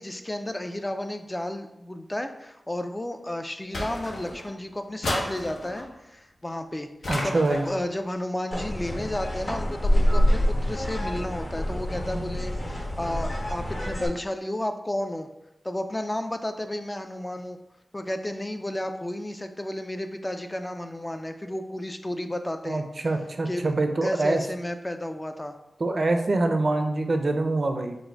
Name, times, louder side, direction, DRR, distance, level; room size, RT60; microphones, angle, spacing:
voice 1, 0.0-6.9 7.2-7.4 7.7-15.3 15.6-17.6 17.9-22.8 23.5-23.7 24.0-25.5, left 1 dB, 20° left, 7 dB, 0.4 m, -32 dB
sound 1, 3.7-4.5 5.0-5.9 7.0-7.8, left 1 dB, 75° left, 0.9 m, -32 dB
voice 2, 7.1-7.6 22.7-24.4 25.8-28.0, right 2 dB, 55° right, 6 dB, 0.5 m, -25 dB
sound 2, 8.5-14.1, equal, 45° left, 1.2 m, -26 dB
4.1 x 2.6 x 4.5 m, 0.90 s
wide cardioid pair, 80°, 0 cm